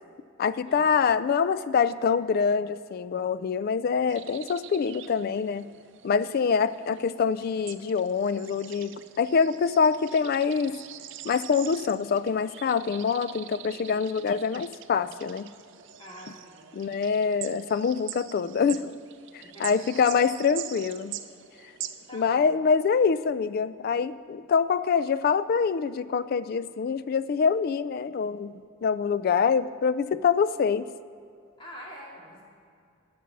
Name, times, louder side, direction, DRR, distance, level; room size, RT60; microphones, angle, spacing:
voice 1, 0.4-5.7 6.0-10.8 11.2-15.5 16.7-18.9 19.3-21.1 22.1-28.5 28.8-30.8, left 6 dB, 50° left, 16 dB, 0.3 m, -25 dB
sound 1, 4.1-22.4, right 11 dB, 65° right, 0.5 m, -44 dB
voice 2, 6.2-6.7 16.0-16.7 19.4-19.8 22.1-22.6 31.6-32.4, equal, 25° left, -4 dB, 2.5 m, -46 dB
12.0 x 6.1 x 6.0 m, 2.4 s
head